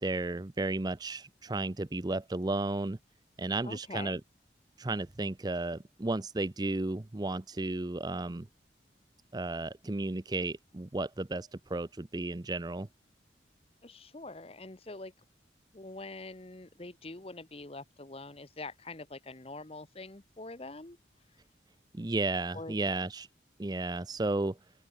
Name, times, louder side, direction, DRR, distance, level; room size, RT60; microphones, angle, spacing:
voice 1, 0.0-3.0 3.4-4.2 4.8-8.5 9.3-12.9 21.9-23.3 23.6-24.6, right 2 dB, 20° right, 0.5 m, -33 dB
voice 2, 3.6-4.2 13.8-15.1 15.7-21.0 22.5-22.8, left 2 dB, 30° left, 1.1 m, -44 dB
open air
head